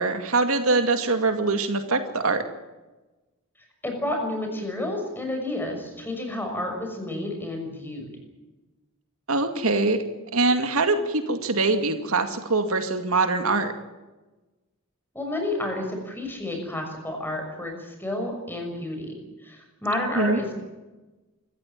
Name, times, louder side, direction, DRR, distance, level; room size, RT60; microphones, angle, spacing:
voice 1, 0.0-2.4 9.3-10.0 10.3-13.7 20.2-20.4, right 3 dB, 80° right, 7 dB, 2.2 m, -23 dB
voice 2, 3.8-8.1 15.1-20.5, left 1 dB, 10° left, 3 dB, 6.2 m, -30 dB
25.0 x 15.0 x 9.1 m, 1.1 s
head